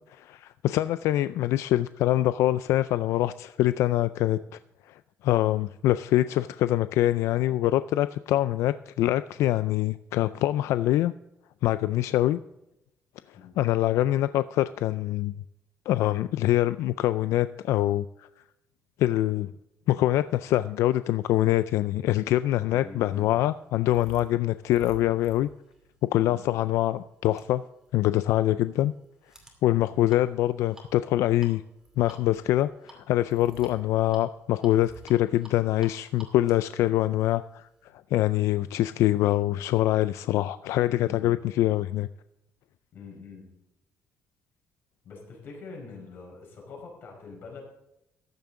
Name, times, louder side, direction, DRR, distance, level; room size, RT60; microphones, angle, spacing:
voice 1, 0.1-4.6 4.9-11.1 11.6-12.4 13.6-15.3 15.9-18.3 19.0-19.5 19.9-25.5 26.1-27.6 27.9-28.9 29.6-31.6 32.0-37.7 38.1-42.1, left 14 dB, 90° left, 14 dB, 0.4 m, -24 dB
voice 2, 4.2-4.6 13.3-13.7 22.7-23.5 40.8-41.4 42.9-43.5 45.0-47.6, left 4 dB, 50° left, 0 dB, 4.9 m, -45 dB
sound 1, 22.2-37.9, right 2 dB, 10° right, 2.5 m, -53 dB
14.0 x 10.5 x 3.7 m, 0.87 s
cardioid pair, 180°, 5 cm